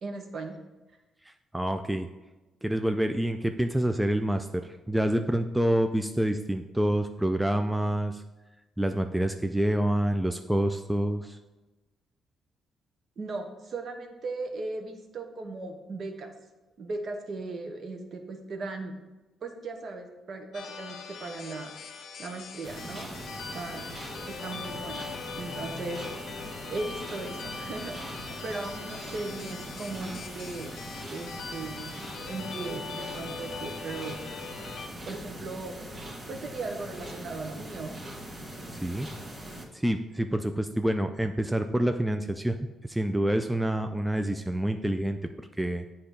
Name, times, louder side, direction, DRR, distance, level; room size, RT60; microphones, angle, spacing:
voice 1, 0.0-0.6 13.2-16.3 16.8-19.0 19.4-21.7 22.2-23.1 23.5-23.9 24.3-26.0 26.7-30.7 31.1-34.2 35.0-35.8 36.3-38.0, right 3 dB, 55° right, 4 dB, 0.9 m, -37 dB
voice 2, 1.3-2.1 2.6-8.2 8.8-11.4 38.7-39.1 39.7-42.6 42.9-45.2 45.6-45.8, right 1 dB, 5° right, 6 dB, 0.3 m, -27 dB
sound 1, 20.5-34.9, left 5 dB, 65° left, 0.6 m, -41 dB
sound 2, 22.6-39.7, right 1 dB, 25° right, 1.6 m, -41 dB
8.0 x 2.9 x 5.1 m, 1.1 s
cardioid pair, 90°, 0 cm